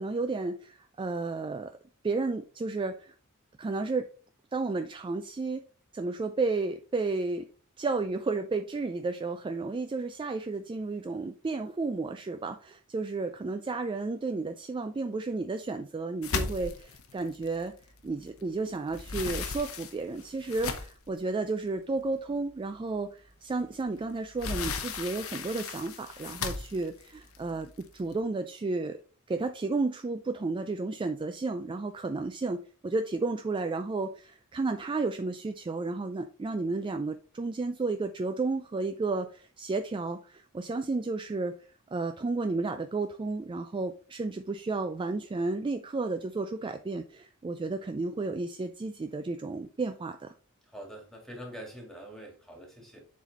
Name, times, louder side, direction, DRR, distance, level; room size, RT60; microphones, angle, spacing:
voice 1, 0.0-1.7 2.0-3.1 3.6-4.1 4.5-5.6 5.9-7.5 7.8-17.7 18.0-29.0 29.3-41.5 41.9-50.3, right 3 dB, 25° right, 0.3 m, -32 dB
sound 1, 16.2-18.4 18.7-21.1 21.8-21.9 22.3-22.4 23.8-28.1, left 5 dB, 70° left, 0.9 m, -36 dB
voice 2, 50.7-53.0, equal, ahead, 2.1 m, -44 dB
7.3 x 4.1 x 4.0 m
head